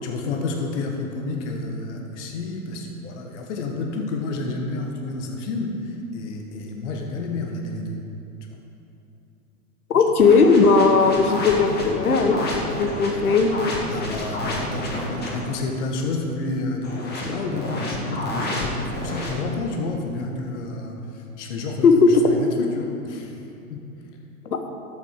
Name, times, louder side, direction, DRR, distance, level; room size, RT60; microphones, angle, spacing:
voice 1, 0.0-8.0 9.9-10.0 13.9-23.4 23.7-23.8, left 3 dB, 55° left, 2 dB, 1.7 m, -30 dB
voice 2, 9.9-13.5 21.8-22.1, left 4 dB, 80° left, 6 dB, 1.3 m, -17 dB
sound 1, 10.2-15.4 16.8-19.3, left 1 dB, 20° left, 2.1 m, -30 dB
13.0 x 8.4 x 4.7 m, 2.7 s
hypercardioid pair, 115°, 44 cm